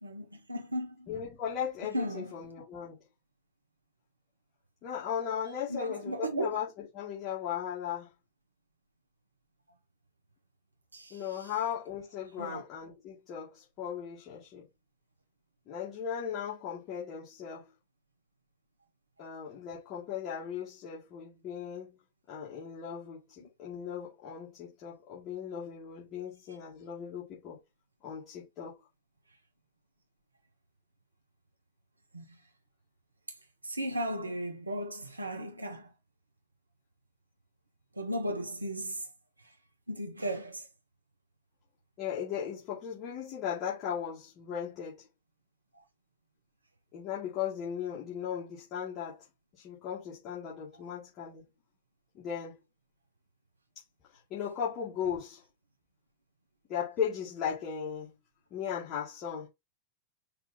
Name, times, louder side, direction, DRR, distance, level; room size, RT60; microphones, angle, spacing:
voice 1, 0.0-1.1 1.9-2.3 5.7-6.5 10.9-11.5 12.4-12.6 32.1-32.2 33.6-35.9 38.0-39.1 39.9-40.7 45.7-45.8, right 1 dB, 80° right, 0.6 m, -35 dB
voice 2, 1.1-3.0 4.8-8.1 11.1-14.6 15.7-17.7 19.2-22.0 22.3-27.6 28.0-28.8 42.0-45.0 46.9-49.2 49.5-51.5 52.1-52.6 54.3-55.4 56.7-58.2 58.5-59.5, left 8 dB, 35° left, 2.2 m, -37 dB
5.8 x 2.5 x 3.6 m
figure-of-eight pair, 90°, 0 cm